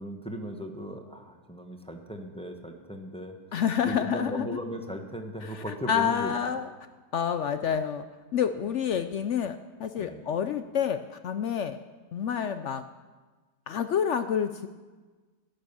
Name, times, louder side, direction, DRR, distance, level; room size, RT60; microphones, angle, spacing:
voice 1, 0.0-6.3 10.0-10.3, equal, 5° left, 3 dB, 1.2 m, -37 dB
voice 2, 3.5-4.5 5.4-6.7 7.1-8.0 8.3-11.8 12.1-12.8 13.7-14.7, left 8 dB, 70° left, 9 dB, 0.7 m, -28 dB
14.0 x 11.5 x 7.0 m, 1.3 s
omnidirectional pair, 1.7 m